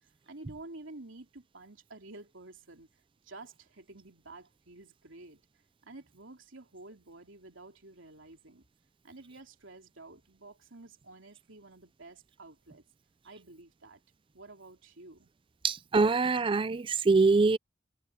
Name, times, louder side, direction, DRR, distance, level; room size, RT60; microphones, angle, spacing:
voice 1, 0.0-2.9 3.2-5.4 5.8-8.6 9.0-12.8 13.2-14.0 14.3-15.3, right 2 dB, 75° right, 3.3 m, -50 dB
voice 2, 15.6-17.6, right 4 dB, 25° right, 0.4 m, -24 dB
head